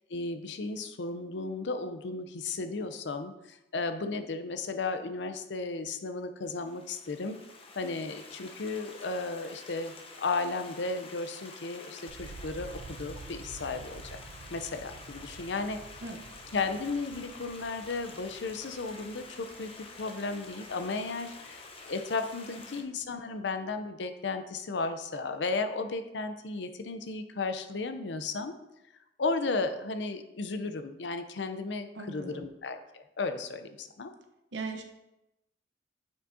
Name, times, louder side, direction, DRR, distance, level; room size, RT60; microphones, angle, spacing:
voice 1, 0.1-7.4 7.8-14.0 14.5-15.8 16.5-28.6 29.2-34.1, left 3 dB, 75° left, 9 dB, 0.6 m, -34 dB
Stream, 6.5-22.8, left 3 dB, 30° left, 0.8 m, -48 dB
sound 1, 12.1-22.1 22.4-23.1, right 4 dB, 50° right, 0.3 m, -50 dB
voice 2, 31.9-32.5 34.5-34.8, right 3 dB, 75° right, 5 dB, 0.9 m, -38 dB
9.1 x 5.2 x 2.7 m, 0.91 s
head